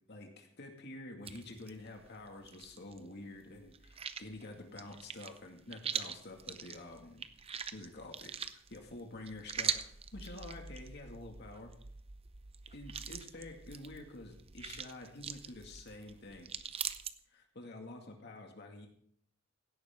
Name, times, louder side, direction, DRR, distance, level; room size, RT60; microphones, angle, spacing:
voice 1, 0.1-7.2 7.7-11.7 12.7-16.5 17.3-18.9, left 2 dB, 60° left, 2 dB, 2.2 m, -48 dB
sound 1, 1.2-3.1 3.3-17.1, right 7 dB, 30° right, 0.7 m, -43 dB
17.0 x 11.5 x 3.8 m, 0.64 s
head